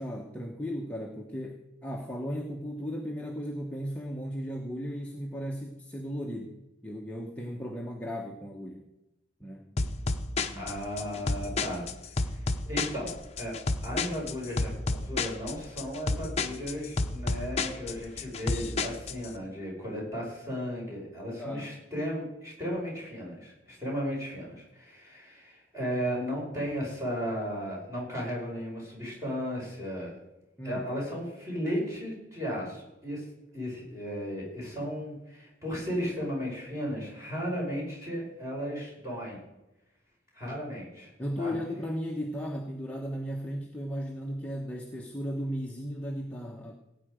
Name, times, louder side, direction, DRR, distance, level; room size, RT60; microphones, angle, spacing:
voice 1, 0.0-6.6 6.8-8.9 9.4-9.7 10.5-10.7 11.0-11.1 21.4-21.7 30.6-30.8 41.2-46.7, equal, 5° left, 0 dB, 1.0 m, -36 dB
sound 1, 9.8-19.3, left 3 dB, 35° left, 0.8 m, -31 dB
voice 2, 10.6-13.5 13.8-30.2 30.6-33.3 33.5-39.4 40.3-41.1 41.4-41.6, equal, 15° right, -4 dB, 5.4 m, -35 dB
17.0 x 9.1 x 5.1 m, 0.96 s
head